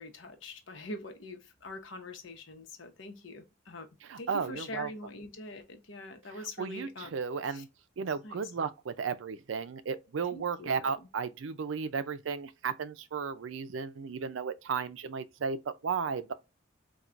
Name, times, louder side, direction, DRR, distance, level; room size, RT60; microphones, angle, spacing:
voice 1, 0.0-3.9 4.2-7.1 7.5-7.6 8.2-8.5 10.3-11.1, left 2 dB, 75° left, 0.9 m, -44 dB
voice 2, 4.0-4.9 6.3-7.7 8.0-16.3, right 6 dB, 80° right, 0.4 m, -34 dB
4.4 x 2.3 x 2.4 m
head